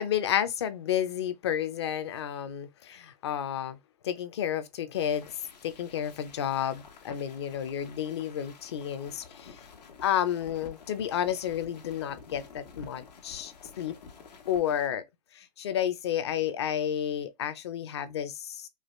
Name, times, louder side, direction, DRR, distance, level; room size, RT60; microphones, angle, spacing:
voice 1, 0.0-3.8 4.0-5.3 5.6-9.6 10.0-14.0 14.5-15.0 15.3-18.7, left 10 dB, 40° left, 0.6 m, -31 dB
sound 1, 4.9-14.9, left 5 dB, 80° left, 1.6 m, -51 dB
4.9 x 2.4 x 3.0 m
hypercardioid pair, 175°, 21 cm